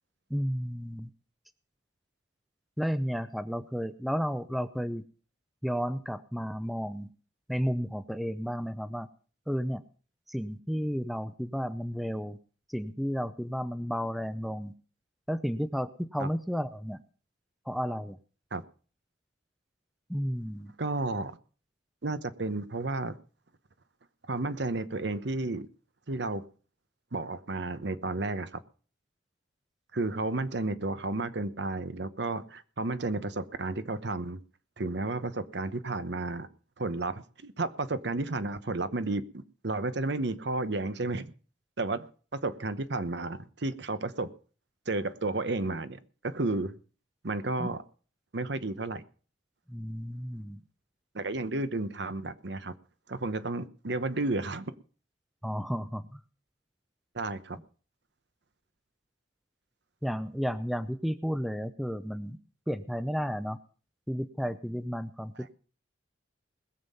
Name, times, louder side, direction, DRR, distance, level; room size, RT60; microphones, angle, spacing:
voice 1, 0.3-1.1 2.8-5.0 5.6-7.1 7.5-9.1 9.5-9.8 10.3-12.4 12.7-14.7 15.3-17.0 17.7-18.2 20.1-20.7 47.6-47.7 49.7-50.6 55.4-56.2 60.0-62.4 62.7-63.6 64.1-65.5, equal, ahead, 12 dB, 0.5 m, -32 dB
voice 2, 20.8-21.3 22.0-23.2 24.3-25.7 26.1-26.5 27.1-28.6 29.9-34.4 34.8-36.5 36.8-41.3 41.8-44.3 44.9-46.7 47.2-47.8 48.3-49.0 51.1-52.7 53.1-54.7 57.1-57.6 65.4-65.5, right 2 dB, 60° right, 13 dB, 0.9 m, -32 dB
20.5 x 7.4 x 5.5 m, 0.40 s
head